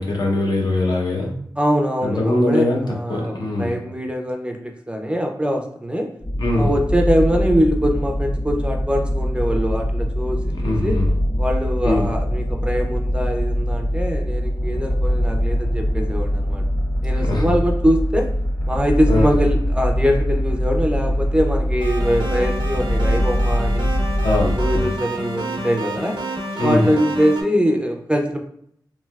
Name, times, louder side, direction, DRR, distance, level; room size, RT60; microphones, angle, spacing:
voice 1, 0.0-1.3 2.0-3.7 6.4-6.7 10.3-11.1 11.8-12.1 17.1-17.5 19.1-19.3 24.2-24.9 26.5-26.9, left 1 dB, 65° left, -1 dB, 0.7 m, -21 dB
voice 2, 1.6-6.1 6.5-11.0 11.4-16.7 17.0-18.3 18.7-23.9 24.4-26.2 26.6-28.4, equal, 15° right, 2 dB, 0.4 m, -22 dB
sound 1, 6.2-24.8, equal, 25° left, 0.8 m, -22 dB
sound 2, 21.8-27.4, right 1 dB, 85° right, 0.7 m, -29 dB
3.2 x 2.7 x 2.3 m, 0.68 s
wide cardioid pair, 80°, 8 cm